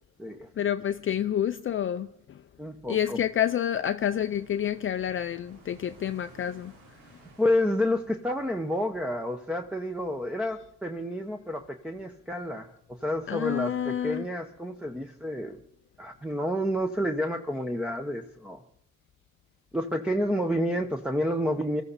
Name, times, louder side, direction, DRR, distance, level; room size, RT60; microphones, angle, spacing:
voice 1, 0.6-2.4 2.9-6.7 13.3-14.3, left 10 dB, 45° left, 0.5 m, -28 dB
voice 2, 2.6-3.2 7.4-15.6 16.0-18.6 19.7-21.8, left 1 dB, 5° right, 0.9 m, -29 dB
sound 1, 4.0-9.2, right 3 dB, 80° right, 3.3 m, -56 dB
20.5 x 14.0 x 4.1 m
cardioid pair, 90°, 30 cm